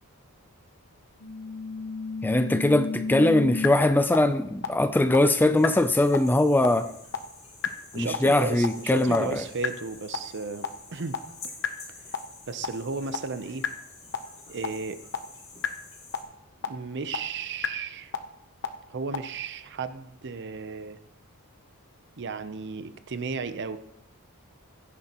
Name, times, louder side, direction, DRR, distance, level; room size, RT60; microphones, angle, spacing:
sound 1, 1.2-3.7 4.1-4.2 4.6-4.7 5.1-5.2 5.6-5.7 6.1-6.2 6.6-6.7 7.1-7.2 7.6-7.7 8.1-8.2 8.6-8.7 9.1-9.2 9.6-9.7 10.1-10.2 10.6-10.7 11.1-11.2 11.6-11.7 12.1-12.2 12.6-12.7 13.1-13.2 13.6-13.7 14.1-14.2 14.6-14.7 15.1-15.2 15.6-15.7 16.1-16.2 16.6-16.7 17.1-17.2 17.6-17.7 18.1-18.2 18.6-18.7 19.1-19.2, left 6 dB, 55° left, 0.8 m, -29 dB
voice 1, 2.2-6.9 7.9-9.4, left 1 dB, 10° left, 11 dB, 0.4 m, -21 dB
sound 2, 5.5-16.2, left 3 dB, 30° left, 2.4 m, -48 dB
voice 2, 7.9-11.2 12.0-12.1 12.5-13.6 14.5-15.0 16.6-18.1 18.9-21.0 22.2-23.8, right 4 dB, 55° right, 11 dB, 0.7 m, -34 dB
16.0 x 9.6 x 3.0 m, 0.82 s
head